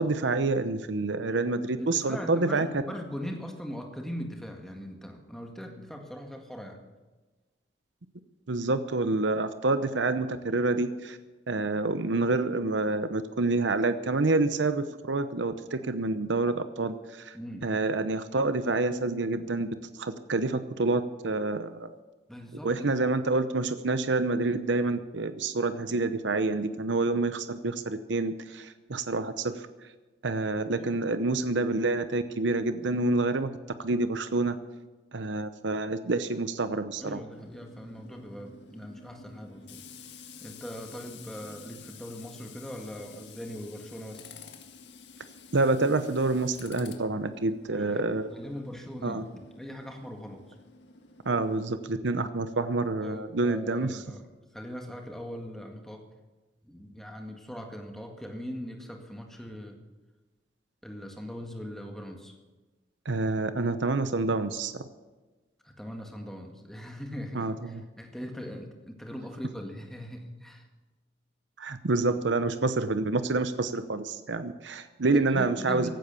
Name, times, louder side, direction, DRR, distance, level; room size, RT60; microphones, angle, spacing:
voice 1, 0.0-2.8 8.5-11.2 11.5-17.4 17.6-19.7 20.0-21.9 22.6-29.7 30.2-33.5 33.8-34.6 35.1-37.2 45.5-48.3 49.0-49.2 51.3-54.0 63.0-64.8 67.3-67.8 71.6-75.9, right 3 dB, 80° right, 11 dB, 0.8 m, -28 dB
voice 2, 1.8-6.8 17.3-17.7 22.3-22.9 30.8-30.9 37.0-44.3 47.7-49.3 49.6-50.4 52.1-52.3 53.0-54.3 54.5-56.0 56.6-59.8 60.8-62.3 65.6-70.7 75.1-75.9, equal, ahead, 2 dB, 1.9 m, -40 dB
Tools, 37.3-51.7, left 4 dB, 75° left, 1.8 m, -50 dB
15.5 x 12.0 x 7.0 m, 1.2 s
head